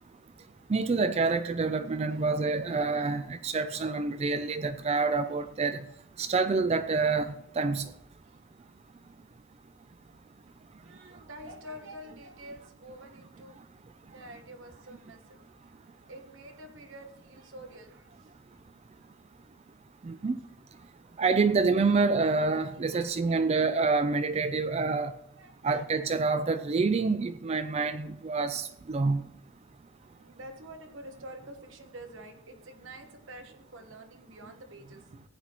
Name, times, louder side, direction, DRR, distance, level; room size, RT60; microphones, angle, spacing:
voice 1, 0.7-5.8 6.2-7.9 20.0-20.3 21.2-25.1 25.6-29.2, right 4 dB, 30° right, 0.3 m, -27 dB
voice 2, 10.8-13.6 14.1-18.6 21.0-21.1 21.4-21.5 22.7-23.7 25.4-26.7 30.0-35.2, right 1 dB, 60° right, 1.2 m, -48 dB
15.0 x 8.9 x 3.0 m
head